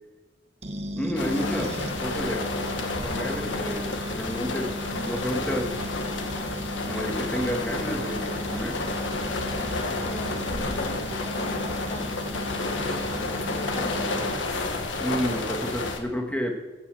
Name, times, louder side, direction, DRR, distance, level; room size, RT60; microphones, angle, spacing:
sound 1, 0.6-14.3, equal, 35° right, 1.2 m, -36 dB
voice 1, 0.9-2.5 3.0-5.8 6.8-8.8 15.0-16.5, equal, 5° left, 2 dB, 1.6 m, -30 dB
sound 2, 1.2-16.0, left 2 dB, 90° left, 1.4 m, -30 dB
voice 2, 9.9-12.3 13.5-14.3, left 2 dB, 30° left, 5 dB, 0.6 m, -40 dB
15.5 x 5.6 x 7.6 m, 1.2 s
head